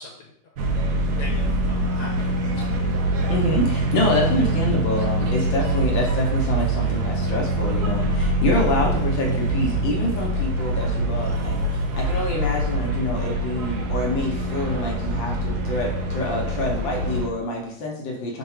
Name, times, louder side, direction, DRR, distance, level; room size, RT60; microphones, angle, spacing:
voice 1, 0.0-2.9, left 2 dB, 90° left, 0 dB, 1.5 m, -42 dB
sound 1, 0.6-17.3, right 1 dB, 85° right, 0.8 m, -24 dB
voice 2, 3.3-18.4, left 1 dB, 70° left, -1 dB, 1.3 m, -26 dB
sound 2, 6.8-12.3, right 1 dB, 65° right, 1.7 m, -41 dB
3.7 x 2.3 x 4.2 m, 0.69 s
omnidirectional pair, 2.4 m